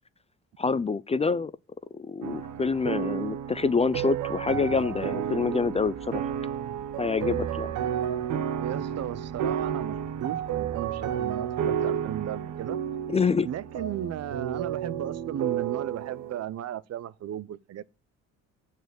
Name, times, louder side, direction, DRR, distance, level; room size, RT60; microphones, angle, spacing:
voice 1, 0.6-1.5 2.1-6.3 7.0-7.7 13.1-13.5, left 4 dB, 20° left, 0.4 m, -26 dB
sound 1, 2.2-16.4, right 9 dB, 75° right, 1.0 m, -31 dB
sound 2, 4.5-11.2, right 7 dB, 20° right, 2.0 m, -50 dB
voice 2, 8.6-12.8 13.4-17.8, right 11 dB, 60° right, 0.6 m, -35 dB
7.1 x 4.5 x 6.1 m
cardioid pair, 90°, 30 cm